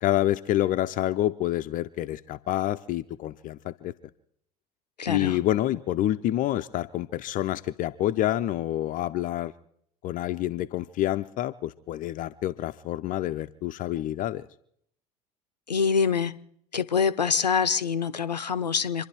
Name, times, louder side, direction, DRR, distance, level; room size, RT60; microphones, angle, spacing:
voice 1, 0.0-3.9 5.1-9.5 10.0-14.5, left 14 dB, 40° left, 11 dB, 0.6 m, -28 dB
voice 2, 5.0-5.4 15.7-16.4 16.7-19.1, left 6 dB, 85° left, 14 dB, 0.7 m, -25 dB
27.0 x 11.5 x 4.6 m, 0.68 s
figure-of-eight pair, 70°, 21 cm